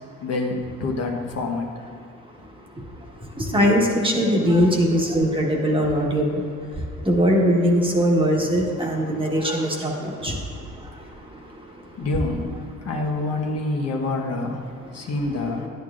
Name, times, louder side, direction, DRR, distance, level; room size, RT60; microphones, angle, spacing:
voice 1, 0.2-1.7 10.3-10.4 12.0-12.5 12.8-14.6 14.9-15.7, left 2 dB, 55° left, 1 dB, 1.1 m, -26 dB
voice 2, 3.4-6.4 7.1-10.3, equal, 15° right, -1 dB, 1.4 m, -20 dB
10.5 x 9.1 x 2.5 m, 2.5 s
cardioid pair, 90°, 30 cm